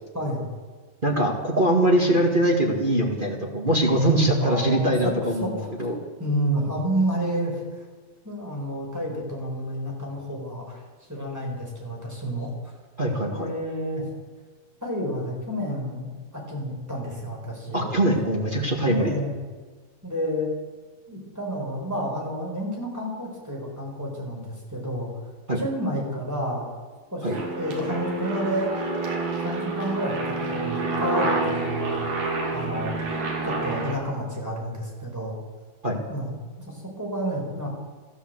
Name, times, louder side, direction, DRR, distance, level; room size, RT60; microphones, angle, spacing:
voice 1, 0.1-0.4 4.4-5.1 5.4-5.7 6.2-7.8 8.2-10.8 11.1-12.5 13.3-14.0 14.8-17.8 18.9-19.3 20.0-20.5 21.1-25.1 25.5-26.7 27.1-28.7 29.4-32.0 32.5-33.0 33.4-35.4 36.1-37.7, equal, 5° right, -2 dB, 4.3 m, -30 dB
voice 2, 1.0-6.0 13.0-13.5 17.7-19.2 25.5-25.6 27.2-27.3 35.8-36.0, right 1 dB, 35° right, -2 dB, 0.8 m, -22 dB
Aircraft, 27.3-33.9, right 3 dB, 65° right, 4.1 m, -28 dB
13.5 x 13.5 x 7.9 m, 1.4 s
omnidirectional pair, 4.2 m